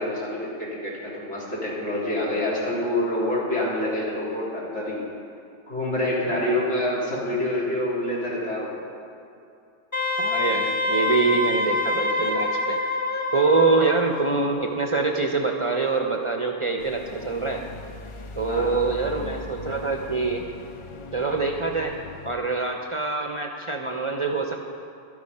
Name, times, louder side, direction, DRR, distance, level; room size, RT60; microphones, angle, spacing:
voice 1, 0.0-5.0 5.7-8.7 18.5-18.7, left 1 dB, 85° left, -6 dB, 3.2 m, -27 dB
Wind instrument woodwind instrument, 9.9-14.1, left 2 dB, 15° left, 0.9 m, -25 dB
voice 2, 10.2-12.8 13.3-17.6 18.3-20.4 21.1-21.9 22.2-24.6, right 3 dB, 35° right, 3 dB, 0.6 m, -25 dB
sound 1, 16.8-22.3, left 3 dB, 50° left, 0.3 m, -40 dB
12.0 x 8.5 x 5.4 m, 2.5 s
omnidirectional pair, 1.2 m